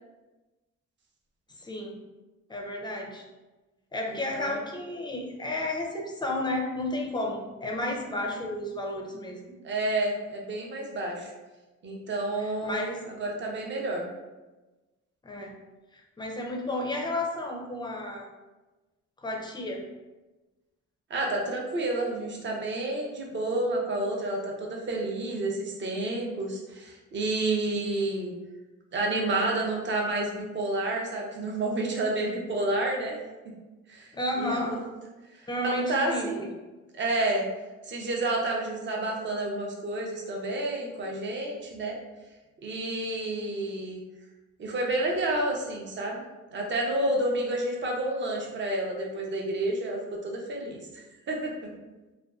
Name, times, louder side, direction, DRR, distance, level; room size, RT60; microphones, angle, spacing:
voice 1, 1.6-2.0 2.5-3.2 3.9-9.4 12.4-13.0 15.2-15.5 15.9-18.3 19.2-19.8 34.1-34.8 35.5-36.5, left 1 dB, 15° left, 0 dB, 0.4 m, -32 dB
voice 2, 4.1-4.6 9.6-11.3 11.8-14.1 21.1-28.3 28.9-33.2 33.9-34.8 35.4-36.5 37.0-37.5 37.8-42.0 42.6-44.0 44.6-46.2 46.5-50.8 51.3-51.5, right 2 dB, 40° right, 0 dB, 0.6 m, -30 dB
2.5 x 2.3 x 2.2 m, 1.1 s
cardioid pair, 90°, 30 cm